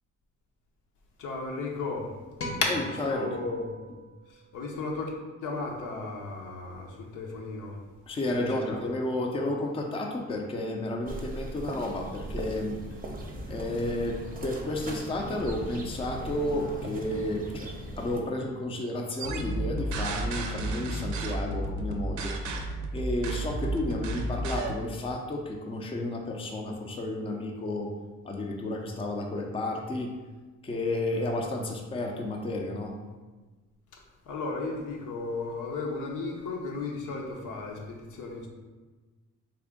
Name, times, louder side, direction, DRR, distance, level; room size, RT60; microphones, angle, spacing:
voice 1, 1.2-2.2 2.6-3.7 4.3-5.1 5.4-7.8 8.3-9.0 33.9-38.5, left 3 dB, 80° left, 0 dB, 0.8 m, -34 dB
sound 1, 2.4-4.9, left 1 dB, 50° left, 0.8 m, -41 dB
voice 2, 8.1-12.8 13.5-17.7 18.0-22.3 22.9-27.9 28.2-30.1 30.6-32.9, left 1 dB, 20° left, 1 dB, 0.5 m, -32 dB
sound 2, 11.1-18.2, right 1 dB, 30° right, 0.6 m, -38 dB
sound 3, 19.2-24.7, right 2 dB, 70° right, 0.5 m, -32 dB
3.5 x 2.4 x 3.6 m, 1.3 s
cardioid pair, 90°, 30 cm